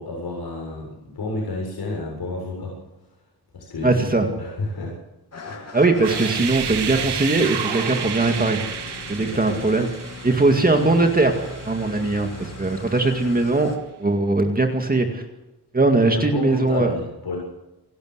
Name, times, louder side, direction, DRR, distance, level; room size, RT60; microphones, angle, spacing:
voice 1, 0.0-2.8 3.5-4.0 4.4-5.0 5.4-5.7 9.2-9.6 16.0-17.4, left 2 dB, 70° left, -2 dB, 7.0 m, -31 dB
voice 2, 3.8-4.3 5.7-8.6 9.1-9.9 10.2-13.7 14.0-15.2 15.7-16.9, right 3 dB, 20° right, 4 dB, 2.1 m, -20 dB
Engine starting / Idling, 5.3-13.8, left 3 dB, 40° left, 3.2 m, -38 dB
sound 1, 6.0-12.8, right 8 dB, 85° right, 1.6 m, -31 dB
28.5 x 12.5 x 8.1 m, 0.97 s
wide cardioid pair, 170°, 39 cm